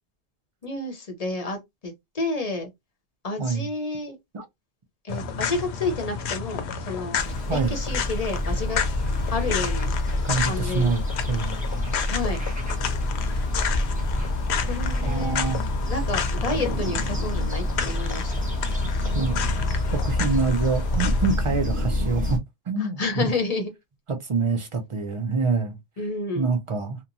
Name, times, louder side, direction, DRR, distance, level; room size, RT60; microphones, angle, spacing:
voice 1, 0.6-2.7 3.2-4.2 5.0-7.2 7.5-8.8 9.3-9.9 10.5-10.9 12.1-12.4 14.6-15.4 15.9-18.4 22.8-23.7 26.0-26.5, left 3 dB, 40° left, 0.7 m, -30 dB
sound 1, 5.1-21.3, left 6 dB, 75° left, 0.8 m, -32 dB
sound 2, 7.2-22.4, left 1 dB, 10° right, 0.7 m, -27 dB
voice 2, 10.2-11.5 15.0-15.6 19.0-19.3 19.9-22.4 22.7-23.3 24.1-25.8 26.3-27.0, right 4 dB, 45° right, 0.4 m, -26 dB
2.8 x 2.2 x 2.5 m
omnidirectional pair, 1.1 m